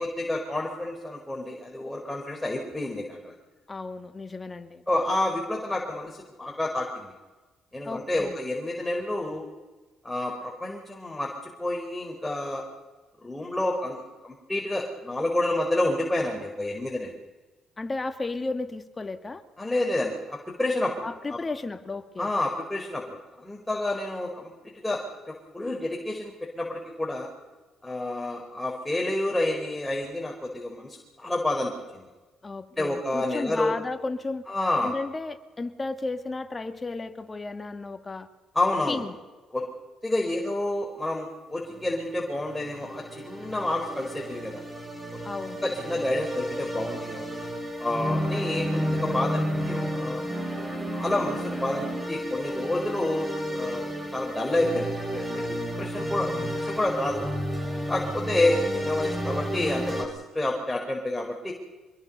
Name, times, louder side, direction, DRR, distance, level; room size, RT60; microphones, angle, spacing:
voice 1, 0.0-3.3 4.9-7.1 7.7-9.4 10.0-11.3 11.6-12.6 13.2-17.2 19.6-21.0 21.3-21.4 22.2-27.3 27.8-32.1 32.8-33.7 34.5-35.0 38.5-39.0 39.5-39.6 40.0-44.6 45.6-47.3 47.8-50.2 50.9-53.8 54.1-57.3 57.9-61.5, left 1 dB, 10° left, -1 dB, 4.7 m, -29 dB
voice 2, 3.7-4.8 7.8-8.4 17.8-19.4 21.0-22.3 32.4-34.5 34.8-38.3 38.9-39.2 45.2-45.6, left 3 dB, 30° left, 7 dB, 2.1 m, -33 dB
sound 1, 41.6-60.0, equal, 20° right, 6.1 m, -32 dB
25.0 x 21.5 x 5.5 m, 1.2 s
hypercardioid pair, 55°, 0 cm